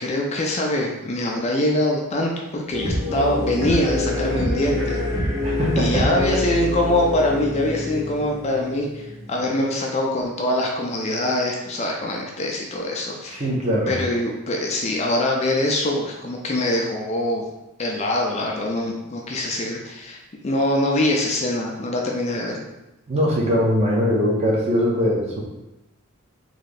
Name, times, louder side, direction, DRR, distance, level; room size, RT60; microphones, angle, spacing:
voice 1, 0.0-5.0 5.8-13.5 13.9-17.4 17.8-22.6, left 1 dB, 30° left, 0 dB, 0.4 m, -23 dB
sound 1, 2.7-9.6, left 1 dB, 50° right, 1.4 m, -26 dB
voice 2, 5.4-6.2 13.3-14.0 23.1-25.4, equal, 30° right, -3 dB, 0.8 m, -21 dB
3.2 x 2.8 x 4.0 m, 0.98 s
head